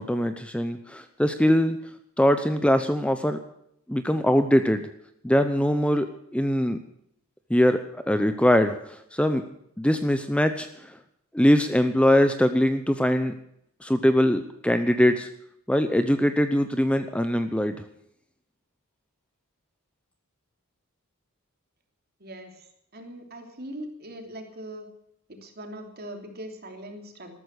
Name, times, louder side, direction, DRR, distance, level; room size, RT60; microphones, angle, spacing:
voice 1, 0.0-1.8 2.2-3.4 3.9-4.9 5.2-6.1 6.3-6.8 7.5-9.4 9.8-11.0 11.3-13.3 13.8-15.3 15.7-17.8, equal, 5° left, 9 dB, 0.8 m, -22 dB
voice 2, 22.2-22.7 22.9-24.9 25.3-27.4, right 1 dB, 45° right, 4 dB, 3.0 m, -40 dB
13.5 x 13.5 x 6.5 m, 0.73 s
head